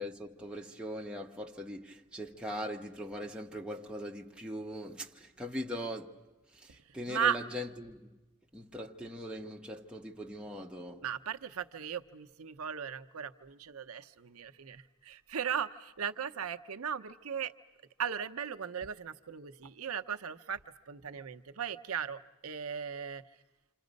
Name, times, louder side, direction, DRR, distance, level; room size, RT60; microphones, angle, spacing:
voice 1, 0.0-6.2 6.5-8.2 8.5-11.0, equal, 5° right, 1.1 m, -41 dB
voice 2, 11.0-17.5 18.0-20.6 20.9-23.2, right 8 dB, 90° right, 0.7 m, -37 dB
28.0 x 27.0 x 5.3 m
head